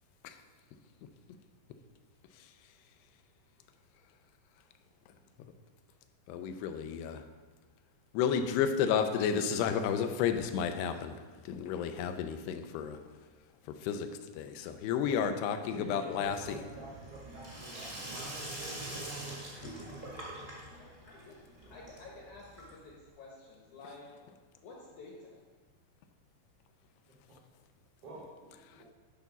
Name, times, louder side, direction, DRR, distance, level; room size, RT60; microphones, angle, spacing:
voice 1, 6.3-7.2 8.1-11.2 11.4-13.0 13.7-14.1 14.3-16.6, left 7 dB, 90° left, 8 dB, 2.7 m, -31 dB
voice 2, 15.1-18.4 18.7-19.0 27.3-27.4 28.0-28.9, right 2 dB, 60° right, -6 dB, 1.4 m, -49 dB
Sink (filling or washing), 16.2-23.0, right 1 dB, 40° right, 0.7 m, -44 dB
voice 3, 17.5-20.5, right 3 dB, 85° right, -2 dB, 1.6 m, -51 dB
voice 4, 20.7-21.4 21.7-24.1 24.6-25.3, left 3 dB, 70° left, -3 dB, 1.9 m, -51 dB
10.5 x 4.0 x 5.9 m, 1.4 s
omnidirectional pair, 4.6 m